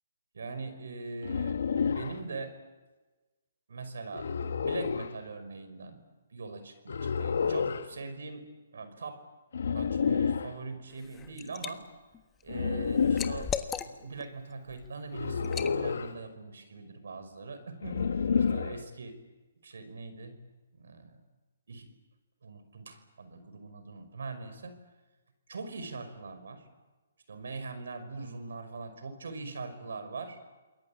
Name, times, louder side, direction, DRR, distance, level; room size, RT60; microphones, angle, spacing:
voice 1, 0.3-1.6 1.9-2.5 3.7-4.3 4.5-6.0 6.3-8.4 8.7-9.2 9.7-11.8 12.4-13.5 13.9-19.2 19.6-20.4 20.7-21.2 21.7-21.9 22.4-24.7 25.5-26.7 27.3-30.4, right 3 dB, 75° right, 10 dB, 5.6 m, -41 dB
sound 1, 1.2-2.2 4.1-5.1 6.9-7.9 9.5-10.5 12.5-13.5 15.1-16.2 17.8-18.8, left 6 dB, 70° left, 1.5 m, -29 dB
Liquid, 10.9-11.7 12.1-14.2 14.7-14.9 15.4-15.8, left 8 dB, 15° left, 1.4 m, -37 dB
28.5 x 21.5 x 8.8 m, 1.2 s
hypercardioid pair, 140°, 0 cm